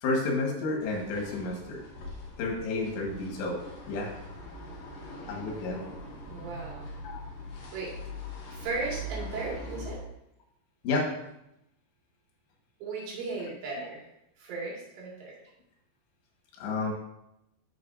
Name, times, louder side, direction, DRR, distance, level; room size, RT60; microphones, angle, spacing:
voice 1, 0.0-1.8 2.4-3.6 3.9-4.1 5.3-5.9 7.0-7.3 10.8-11.1 16.6-16.9, left 3 dB, 85° left, 0 dB, 3.7 m, -30 dB
sound 1, 0.8-10.0, left 1 dB, 50° left, 2.5 m, -42 dB
voice 2, 6.3-6.9 7.7-7.9 8.5-10.0 12.8-14.0 14.4-15.4, right 3 dB, 80° right, -4 dB, 4.4 m, -36 dB
12.0 x 5.4 x 2.6 m, 0.84 s
omnidirectional pair, 4.9 m